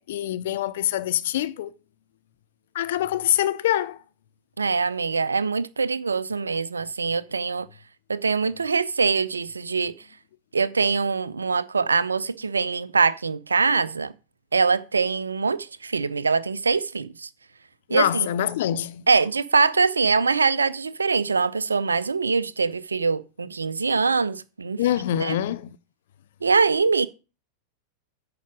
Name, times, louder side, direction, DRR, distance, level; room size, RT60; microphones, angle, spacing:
voice 1, 0.0-1.7 2.7-4.0 17.9-19.0 24.8-25.8, left 12 dB, 55° left, 0.4 m, -25 dB
voice 2, 4.6-7.7 8.1-9.9 10.5-14.1 14.5-17.3 17.9-18.3 19.1-24.8 25.1-25.4 26.4-27.1, right 4 dB, 75° right, 0.5 m, -23 dB
9.3 x 5.1 x 6.2 m
figure-of-eight pair, 90°, 0 cm